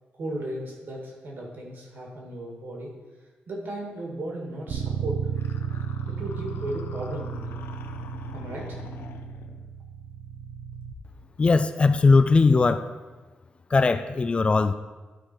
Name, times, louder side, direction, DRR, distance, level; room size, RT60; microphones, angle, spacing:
voice 1, 0.1-2.9 3.5-5.2 6.1-7.6 8.3-8.9, right 1 dB, 65° right, -1 dB, 2.2 m, -35 dB
Bass guitar, 4.7-10.9, right 7 dB, 80° right, 0.9 m, -33 dB
sound 1, 5.4-9.7, left 6 dB, 85° left, 0.6 m, -44 dB
voice 2, 11.4-12.9 13.7-14.7, left 4 dB, 30° left, 11 dB, 0.3 m, -19 dB
12.5 x 4.8 x 4.5 m, 1.3 s
wide cardioid pair, 140°, 4 cm